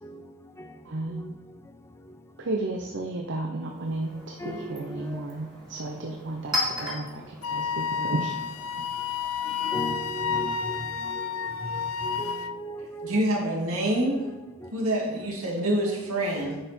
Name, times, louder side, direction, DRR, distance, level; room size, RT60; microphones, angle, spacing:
voice 1, 0.8-1.3 2.4-8.4, right 2 dB, 55° right, 0.7 m, -33 dB
Chink clink, 3.6-9.1, left 1 dB, 20° right, 2.5 m, -37 dB
Wind instrument woodwind instrument, 7.4-12.5, left 6 dB, 70° left, 0.5 m, -30 dB
voice 2, 9.7-10.8 11.2-11.3 12.1-13.1, right 1 dB, 10° left, 0.4 m, -35 dB
voice 3, 13.0-14.2 14.7-16.6, right 1 dB, 75° right, 2.4 m, -26 dB
9.9 x 5.6 x 4.4 m
head